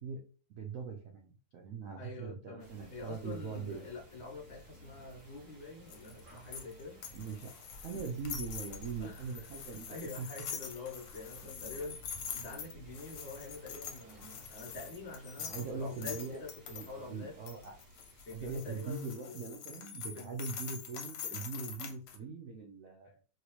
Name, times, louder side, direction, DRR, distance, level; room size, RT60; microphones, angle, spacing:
voice 1, 0.6-3.9 7.1-10.3 11.4-11.7 15.4-16.4 16.7-17.7 18.3-23.2, right 5 dB, 75° right, 1 dB, 0.7 m, -42 dB
voice 2, 2.0-7.0 9.0-17.4 18.3-19.4 20.1-20.4 21.3-21.4, left 3 dB, 45° left, -1 dB, 1.0 m, -46 dB
sound 1, 2.6-19.2, left 1 dB, 50° right, 1.5 m, -55 dB
sound 2, 5.9-16.9 17.5-22.2, left 8 dB, 90° left, 1.3 m, -45 dB
3.0 x 2.7 x 3.0 m, 0.38 s
omnidirectional pair, 1.9 m